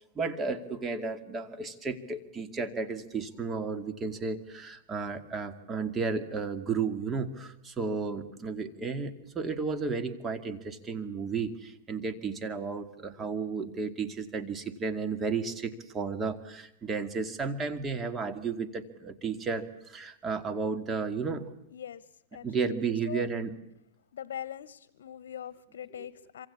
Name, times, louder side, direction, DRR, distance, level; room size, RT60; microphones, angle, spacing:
voice 1, 0.2-21.5 22.4-23.5, right 4 dB, 20° right, 9 dB, 2.2 m, -33 dB
voice 2, 21.7-23.3 24.1-26.5, left 9 dB, 80° left, 17 dB, 1.1 m, -42 dB
26.5 x 25.5 x 8.4 m, 0.77 s
hypercardioid pair, 135°, 0 cm